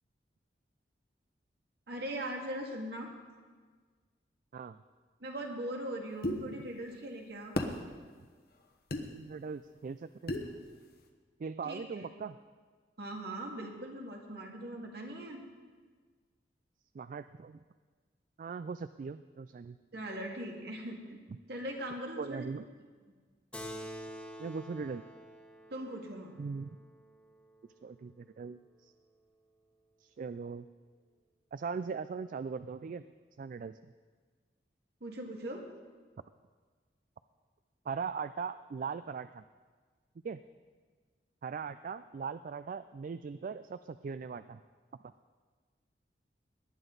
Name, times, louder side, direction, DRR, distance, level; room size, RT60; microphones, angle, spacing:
voice 1, 1.9-3.1 5.2-7.5 11.6-12.1 13.0-15.4 19.9-21.2 21.5-22.5 25.7-26.4 35.0-35.6, right 1 dB, 65° right, 1 dB, 2.1 m, -40 dB
sound 1, 6.2-6.4 7.6-7.8 8.9-9.0 10.3-10.5, left 1 dB, 60° left, 1.1 m, -32 dB
voice 2, 9.1-10.4 11.4-12.4 16.9-17.6 18.4-19.8 22.2-22.7 24.4-25.0 26.4-26.8 27.8-28.9 30.0-30.7 31.5-33.0 33.4-33.8 37.9-39.4 40.2-40.4 41.4-44.6, right 5 dB, 50° right, 12 dB, 0.3 m, -40 dB
Keyboard (musical), 23.5-28.4, equal, 5° left, 1.2 m, -48 dB
18.5 x 11.0 x 4.0 m, 1.5 s
head